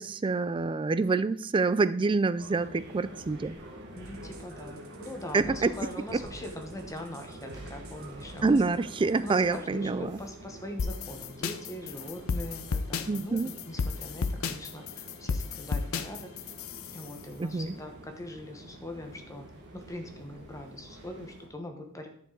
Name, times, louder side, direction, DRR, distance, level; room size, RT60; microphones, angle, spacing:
voice 1, 0.0-3.6 5.3-5.7 8.4-10.2 13.1-13.5 17.4-17.7, right 3 dB, 25° right, 15 dB, 0.3 m, -27 dB
sound 1, 2.4-21.5, right 1 dB, 55° right, 1.8 m, -47 dB
voice 2, 3.9-8.6 9.2-16.3 16.9-19.5 19.7-22.1, left 1 dB, 15° left, 4 dB, 1.1 m, -42 dB
sound 2, 4.0-9.6, right 2 dB, 90° right, 1.7 m, -48 dB
sound 3, 10.8-17.1, left 4 dB, 70° left, 0.5 m, -33 dB
10.5 x 6.9 x 3.9 m, 0.64 s
head